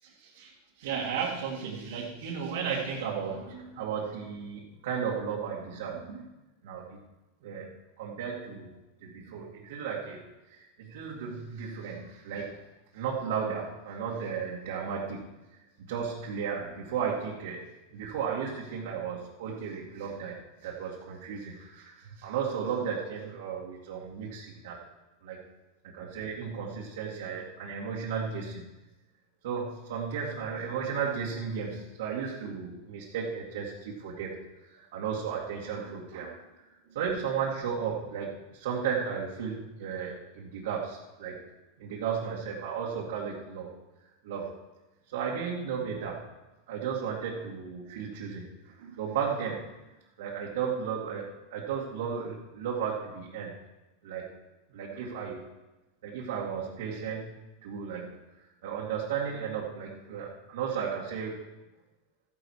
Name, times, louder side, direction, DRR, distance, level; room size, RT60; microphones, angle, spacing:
voice 1, 0.2-6.3 6.6-7.0 7.4-8.7 9.0-10.2 10.5-12.6 12.9-15.3 15.8-17.6 17.9-24.8 25.2-25.4 25.8-28.6 29.4-34.3 34.7-36.4 36.9-41.4 41.8-43.7 44.2-44.6 45.1-46.3 46.7-49.7 50.2-53.5 54.0-54.3 54.7-55.4 56.0-57.3 57.6-58.2 58.6-61.4, right 6 dB, 75° right, -5 dB, 2.3 m, -34 dB
13.5 x 10.5 x 4.8 m, 1.0 s
hypercardioid pair, 115°, 0 cm